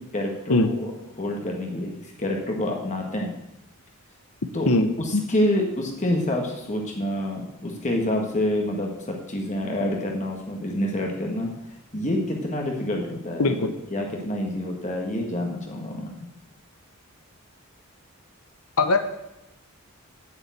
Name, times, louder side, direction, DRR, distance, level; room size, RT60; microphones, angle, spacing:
voice 1, 0.1-0.9 1.2-3.3 4.5-4.7 5.0-11.5 11.9-16.1, left 1 dB, 35° left, 0 dB, 1.6 m, -27 dB
voice 2, 4.7-5.2 13.4-13.7 18.8-19.0, left 2 dB, 80° left, 8 dB, 1.0 m, -21 dB
8.0 x 7.2 x 8.3 m, 0.87 s
head